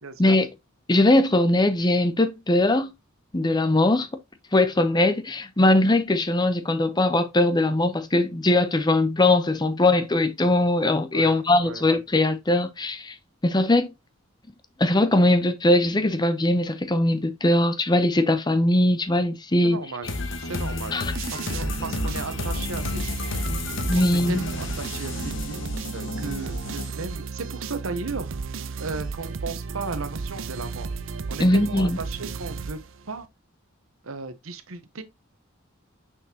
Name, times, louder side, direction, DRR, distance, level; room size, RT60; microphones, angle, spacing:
voice 1, 0.0-0.4 11.1-11.8 19.6-20.1 20.4-21.0 21.3-23.2 23.9-25.6 25.9-28.3 28.8-30.9 31.3-32.8 33.1-33.3 34.0-35.0, right 4 dB, 90° right, 1.0 m, -35 dB
voice 2, 0.9-2.9 3.3-4.1 4.5-13.1 13.4-13.9 14.8-19.8 20.9-21.1 23.8-24.4 31.4-32.0, left 1 dB, 20° left, 0.7 m, -21 dB
sound 1, 20.0-26.9, left 2 dB, 65° left, 1.1 m, -32 dB
sound 2, 21.2-33.3, right 4 dB, 65° right, 0.5 m, -34 dB
6.3 x 5.9 x 2.9 m
head